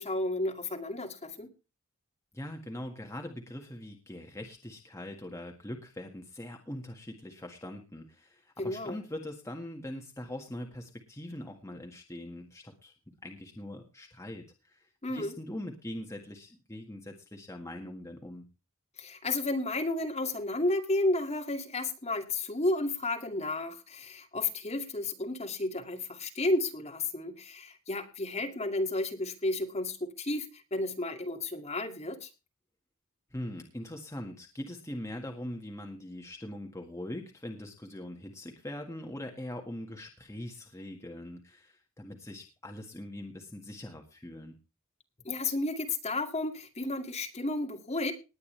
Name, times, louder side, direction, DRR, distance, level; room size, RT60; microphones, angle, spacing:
voice 1, 0.0-1.5 8.6-9.0 15.0-15.3 19.0-32.3 45.2-48.1, left 2 dB, 30° left, 4 dB, 2.2 m, -32 dB
voice 2, 2.3-12.9 13.2-18.5 33.3-44.5, left 1 dB, 15° left, 2 dB, 1.8 m, -42 dB
19.5 x 9.5 x 3.3 m, 0.30 s
head